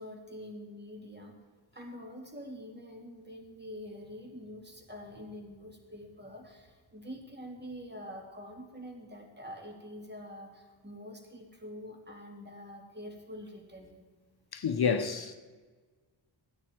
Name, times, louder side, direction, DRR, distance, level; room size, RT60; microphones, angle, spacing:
voice 1, 0.0-1.3 1.7-14.0, equal, 20° right, 2.8 m, -46 dB
voice 2, 14.5-15.3, left 6 dB, 50° left, 0.9 m, -29 dB
15.5 x 9.8 x 4.6 m
cardioid pair, 55°, 48 cm